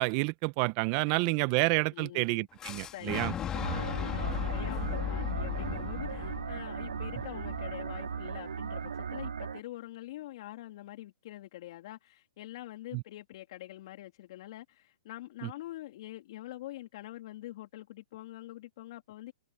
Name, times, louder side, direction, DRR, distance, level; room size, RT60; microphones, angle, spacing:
voice 1, 0.0-3.3 12.9-13.0 15.4-15.5, right 27 dB, 35° right, 1.2 m, -29 dB
voice 2, 1.6-2.5 2.8-19.3, left 15 dB, 50° left, 3.3 m, -45 dB
Boom, 2.6-8.5, left 9 dB, 20° left, 4.1 m, -37 dB
sound 1, 3.5-9.6, right 6 dB, 80° right, 4.1 m, -37 dB
hypercardioid pair, 135°, 4 cm